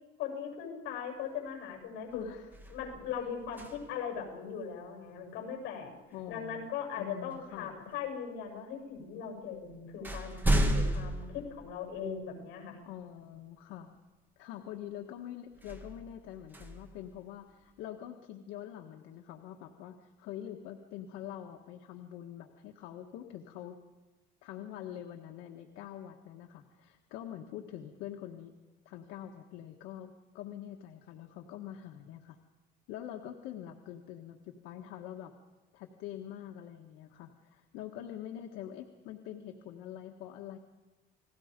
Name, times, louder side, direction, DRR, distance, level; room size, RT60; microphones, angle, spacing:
voice 1, 0.2-2.2 2.7-5.9 6.3-12.8, left 7 dB, 70° left, 2 dB, 7.5 m, -39 dB
sound 1, 1.5-1.7 2.1-4.2 6.3-6.5 7.3-8.1 8.9-9.0 9.4-12.3 12.8-12.9 15.5-17.7, right 1 dB, 10° right, 1.8 m, -34 dB
voice 2, 2.1-2.5 6.1-6.7 7.0-7.8 12.8-13.9 14.4-23.8 24.4-28.5 28.8-32.4 32.9-35.3 35.7-40.6, left 11 dB, 90° left, 3 dB, 1.5 m, -45 dB
30.0 x 20.0 x 5.2 m, 1.2 s
cardioid pair, 170°, 19 cm